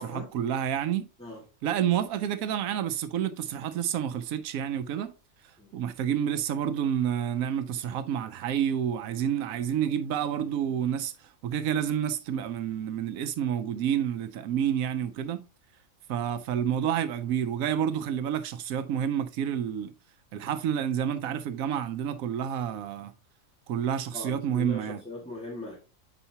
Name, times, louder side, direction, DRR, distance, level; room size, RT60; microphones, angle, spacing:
voice 1, 0.0-1.1 1.6-5.1 5.7-15.4 16.1-19.9 20.3-23.1 23.7-25.0, right 9 dB, 90° right, 1.0 m, -29 dB
voice 2, 24.1-25.8, left 1 dB, 5° left, 1.7 m, -39 dB
8.0 x 5.6 x 2.8 m
omnidirectional pair, 1.4 m